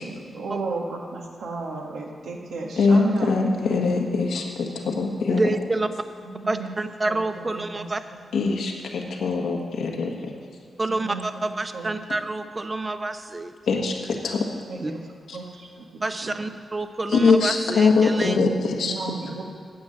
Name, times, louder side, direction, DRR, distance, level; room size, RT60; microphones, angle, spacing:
voice 1, 0.0-3.3 3.6-3.8 6.2-6.7 7.0-7.9 8.3-8.5 10.9-11.4 11.7-11.9 14.7-15.0 15.3-16.5 18.8-19.4, right 4 dB, 85° right, 0 dB, 1.6 m, -34 dB
voice 2, 2.8-5.5 8.3-10.3 13.7-14.4 15.3-15.4 17.1-18.9, left 4 dB, 85° left, 1 dB, 1.4 m, -22 dB
voice 3, 5.3-5.9 6.5-8.0 10.8-13.5 14.8-14.9 16.0-18.4, right 2 dB, 35° right, 9 dB, 0.8 m, -28 dB
9.4 x 7.5 x 7.8 m, 2.3 s
cardioid pair, 60°, 0 cm